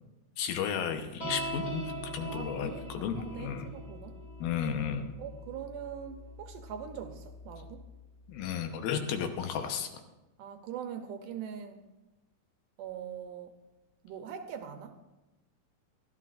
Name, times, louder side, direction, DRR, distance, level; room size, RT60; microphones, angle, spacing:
voice 1, 0.4-3.7 4.4-5.1 8.3-9.9, left 7 dB, 80° left, 2.9 m, -33 dB
sound 1, 1.2-7.9, equal, 10° left, 2.4 m, -42 dB
voice 2, 2.3-4.2 5.2-7.8 10.4-11.8 12.8-13.6 14.0-15.0, right 8 dB, 75° right, 2.1 m, -42 dB
23.0 x 14.0 x 2.6 m
omnidirectional pair, 4.2 m